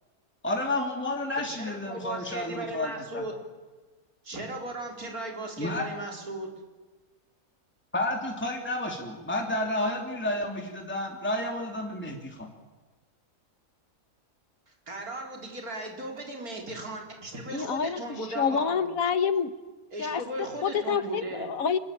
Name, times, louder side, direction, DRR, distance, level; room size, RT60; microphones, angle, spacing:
voice 1, 0.4-3.2 5.6-5.8 7.9-12.5, left 1 dB, 5° left, 1 dB, 2.8 m, -31 dB
voice 2, 1.4-3.3 4.2-6.5 14.7-18.9 19.9-21.5, right 2 dB, 90° right, 1 dB, 4.6 m, -37 dB
voice 3, 17.5-18.0 18.4-19.5 20.0-20.2 20.6-21.8, left 6 dB, 70° left, 12 dB, 1.6 m, -27 dB
26.0 x 21.0 x 8.6 m, 1.3 s
omnidirectional pair, 1.5 m